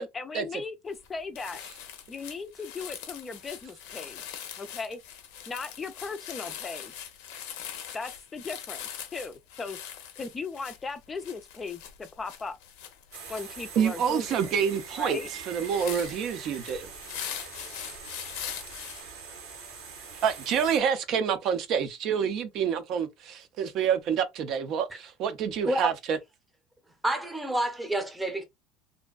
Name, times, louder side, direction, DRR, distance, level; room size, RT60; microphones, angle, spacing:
voice 1, 0.0-1.6 2.1-5.0 5.5-6.9 7.9-8.8 9.1-9.8 10.2-12.6 13.3-14.5 15.0-15.3, left 4 dB, 25° left, 0.4 m, -37 dB
sound 1, 0.9-1.1 1.3-19.0, left 9 dB, 80° left, 0.5 m, -42 dB
sound 2, 13.1-20.8, right 5 dB, 90° right, 0.9 m, -44 dB
voice 2, 13.8-15.2 15.5-16.9 20.2-26.2, right 7 dB, 55° right, 0.4 m, -27 dB
voice 3, 27.0-28.4, right 1 dB, 10° right, 0.7 m, -28 dB
2.5 x 2.1 x 2.3 m
supercardioid pair, 105°, 0 cm